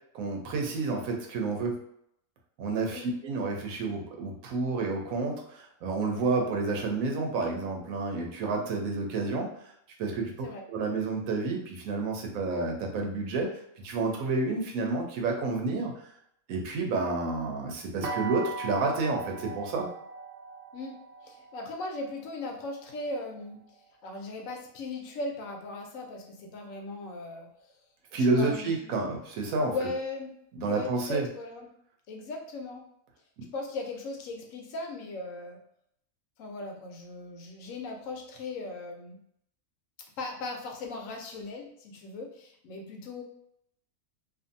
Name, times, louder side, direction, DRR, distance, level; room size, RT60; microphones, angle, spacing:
voice 1, 0.1-1.8 2.6-9.5 10.0-10.3 10.7-13.5 13.8-16.0 16.5-19.9 28.1-29.7 30.5-31.3 33.4-33.5, right 3 dB, 80° right, 2 dB, 1.1 m, -30 dB
sound 1, 18.0-23.9, right 4 dB, 65° right, 0.7 m, -40 dB
voice 2, 20.7-23.6 24.0-27.7 28.2-29.1 29.6-31.7 32.1-32.9 33.5-35.6 36.4-39.2 40.2-43.2, left 2 dB, 75° left, 2 dB, 1.0 m, -38 dB
2.6 x 2.5 x 2.6 m, 0.72 s
omnidirectional pair, 1.5 m